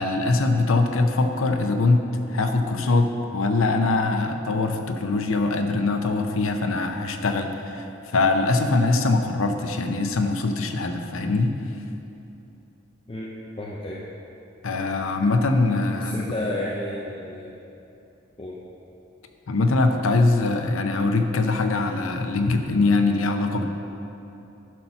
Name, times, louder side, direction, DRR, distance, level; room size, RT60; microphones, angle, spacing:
voice 1, 0.0-7.9 8.1-11.6 14.6-16.2 19.5-23.7, left 3 dB, 75° left, 5 dB, 0.6 m, -22 dB
voice 2, 13.6-14.0 16.0-17.5 18.4-18.6, left 1 dB, 25° left, -4 dB, 0.5 m, -31 dB
11.0 x 4.2 x 5.7 m, 2.8 s
head